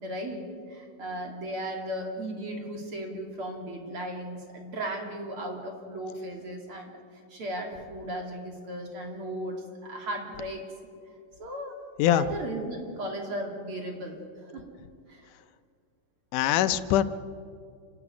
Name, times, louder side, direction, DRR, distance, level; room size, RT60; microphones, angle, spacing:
voice 1, 0.0-7.0 7.3-10.6 11.1-11.2 11.4-11.8 12.1-14.7 15.1-15.3, right 1 dB, 45° right, 1 dB, 3.3 m, -36 dB
voice 2, 16.3-17.0, left 12 dB, 80° left, 12 dB, 2.2 m, -22 dB
28.0 x 12.0 x 9.6 m, 2.3 s
omnidirectional pair, 3.7 m